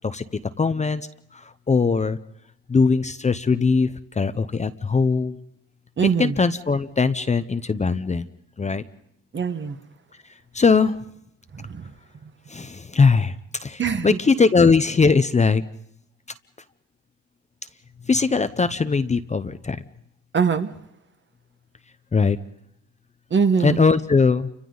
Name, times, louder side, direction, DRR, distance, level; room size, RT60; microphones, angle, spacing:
voice 1, 0.6-1.1 1.3-2.2 2.7-5.4 6.2-8.3 8.6-8.8 10.5-11.0 12.5-13.4 13.6-15.6 18.1-19.8 22.1-22.4 23.6-24.5, left 4 dB, 25° left, 0.7 m, -20 dB
voice 2, 6.0-6.4 9.3-9.8 11.5-11.8 13.8-14.2 20.3-20.7 23.3-23.8, right 5 dB, 40° right, 1.5 m, -22 dB
29.0 x 25.0 x 3.9 m
cardioid pair, 90°, 30 cm